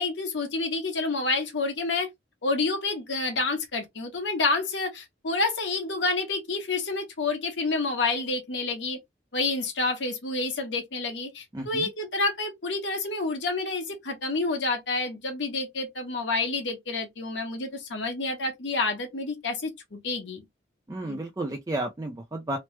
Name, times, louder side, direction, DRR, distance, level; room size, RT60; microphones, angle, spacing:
voice 1, 0.0-2.1 2.4-9.0 9.3-20.4 21.1-21.2, left 3 dB, 80° left, 1.1 m, -29 dB
voice 2, 11.5-11.9 20.9-22.6, right 1 dB, 20° right, 0.4 m, -32 dB
3.1 x 2.0 x 3.1 m
head